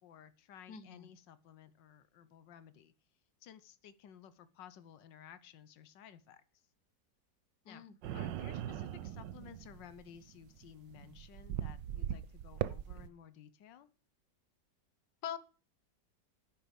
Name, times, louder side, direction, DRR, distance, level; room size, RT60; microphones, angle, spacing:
voice 1, 0.0-2.9 3.4-6.6 7.6-13.9, left 9 dB, 90° left, 14 dB, 1.6 m, -56 dB
voice 2, 0.7-1.1 7.6-7.9 15.2-15.4, left 9 dB, 70° left, 15 dB, 1.6 m, -43 dB
sound 1, 8.0-13.1, right 11 dB, 90° right, 1.5 m, -40 dB
10.5 x 10.5 x 5.3 m, 0.35 s
omnidirectional pair, 1.9 m